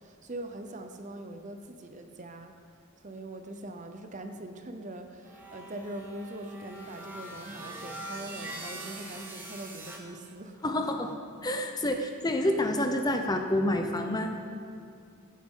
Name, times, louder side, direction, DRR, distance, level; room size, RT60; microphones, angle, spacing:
voice 1, 0.0-2.5 3.0-10.6, right 1 dB, 35° right, 6 dB, 0.7 m, -42 dB
sound 1, 5.2-10.0, right 1 dB, 10° right, 1.1 m, -43 dB
voice 2, 10.6-14.3, left 1 dB, 20° left, 5 dB, 0.6 m, -28 dB
16.5 x 9.3 x 3.8 m, 2.3 s
head